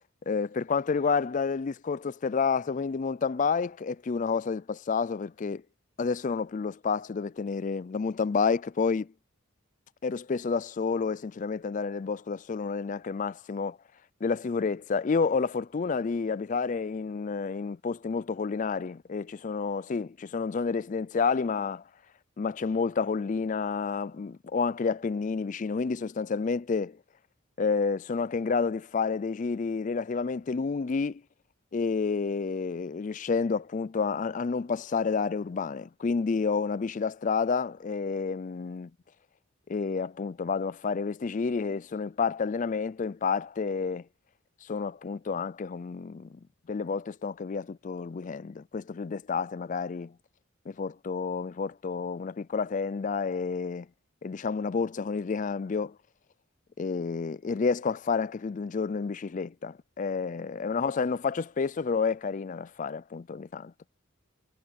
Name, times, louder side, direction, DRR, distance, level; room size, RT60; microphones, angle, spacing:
voice 1, 0.3-5.6 6.0-9.1 10.0-13.8 14.2-21.8 22.4-27.0 27.6-31.2 31.7-38.9 39.7-44.0 44.6-46.4 46.7-50.1 50.7-53.9 54.2-56.0 56.8-63.7, left 5 dB, 40° left, 0.4 m, -30 dB
head